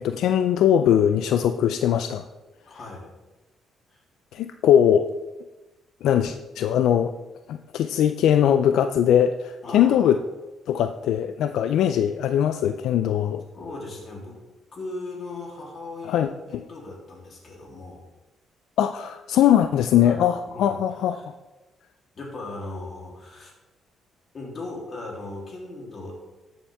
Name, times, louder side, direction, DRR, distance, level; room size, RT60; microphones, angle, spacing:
voice 1, 0.0-2.2 4.3-5.1 6.0-7.2 7.5-10.2 10.7-13.4 16.1-16.3 18.8-21.2, left 10 dB, 80° left, 9 dB, 0.4 m, -21 dB
voice 2, 2.6-3.1 3.9-4.0 9.6-10.1 13.5-14.4 14.7-18.0 20.0-20.2 20.5-20.8 21.1-21.2 22.1-23.5 24.3-26.1, left 2 dB, 45° left, -2 dB, 3.2 m, -38 dB
13.0 x 7.1 x 3.5 m, 1.1 s
cardioid pair, 90°, 0 cm